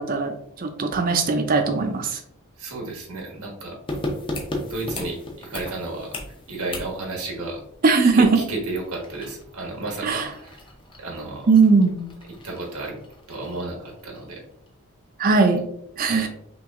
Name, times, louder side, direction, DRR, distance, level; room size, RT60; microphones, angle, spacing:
voice 1, 0.0-2.2 7.8-8.4 10.0-10.3 11.5-12.0 15.2-15.6 16.0-16.3, right 4 dB, 40° right, 6 dB, 0.5 m, -19 dB
voice 2, 2.6-3.8 4.7-6.1 6.5-7.6 8.0-10.6 11.0-11.5 12.4-13.0 13.3-14.4 16.1-16.3, right 2 dB, 80° right, -1 dB, 1.3 m, -32 dB
sound 1, 3.9-14.3 14.7-14.8, left 1 dB, 25° left, 0.6 m, -37 dB
5.8 x 2.6 x 2.4 m, 0.72 s
head